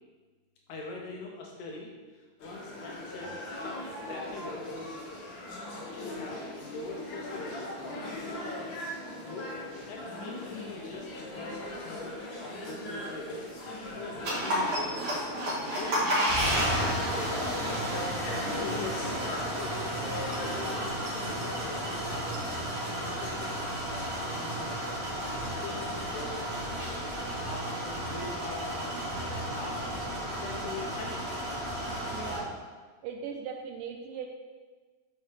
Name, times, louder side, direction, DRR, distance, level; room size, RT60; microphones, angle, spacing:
voice 1, 0.7-5.0 5.7-8.5 9.2-9.5 9.9-13.6 13.9-16.0 16.7-16.9 17.4-19.0 19.3-20.0 20.5-22.3 22.7-24.8 25.1-26.6 27.4-29.9 30.3-31.3, left 3 dB, 85° left, -1 dB, 1.7 m, -43 dB
sound 1, 2.4-20.9, left 1 dB, 65° left, 1.2 m, -39 dB
sound 2, 14.2-32.4, equal, 60° right, 1.5 m, -32 dB
voice 2, 32.0-32.6 33.0-34.3, right 6 dB, 85° right, 2 dB, 1.8 m, -38 dB
5.6 x 5.6 x 3.2 m, 1.4 s
omnidirectional pair, 4.2 m